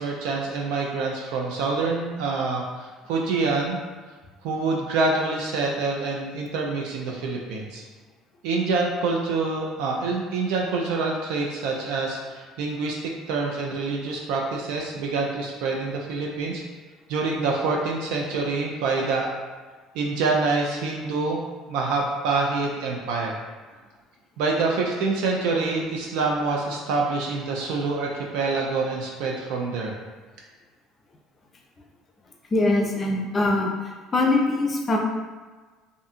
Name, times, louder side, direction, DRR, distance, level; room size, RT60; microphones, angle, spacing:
voice 1, 0.0-3.8 4.4-7.8 8.4-16.6 17.1-19.3 19.9-21.4 21.7-23.4 24.4-30.0, right 3 dB, 70° right, -1 dB, 0.3 m, -26 dB
voice 2, 32.5-33.7 34.1-35.0, left 2 dB, 35° left, 1 dB, 0.5 m, -22 dB
2.5 x 2.5 x 2.4 m, 1.3 s
hypercardioid pair, 65°, 0 cm